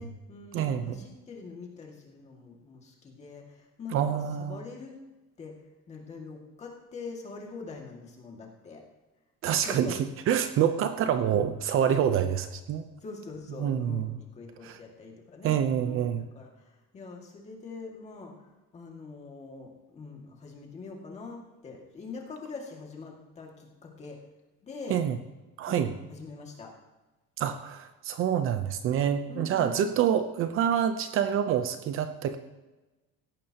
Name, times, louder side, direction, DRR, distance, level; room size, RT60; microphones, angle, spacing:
voice 1, 0.0-5.0 5.4-5.6 5.9-8.8 9.5-10.0 11.2-11.4 13.0-18.5 18.7-24.2 24.6-25.0 25.7-26.7 29.3-29.9, left 4 dB, 25° left, 0 dB, 2.2 m, -43 dB
voice 2, 0.5-1.0 3.9-4.6 9.4-10.0 10.3-12.8 13.6-14.1 14.6-14.8 15.4-16.3 24.9-25.2 25.6-25.9 27.4-32.4, right 9 dB, 45° right, 9 dB, 0.8 m, -27 dB
17.5 x 14.5 x 3.0 m, 1.1 s
cardioid pair, 180°, 29 cm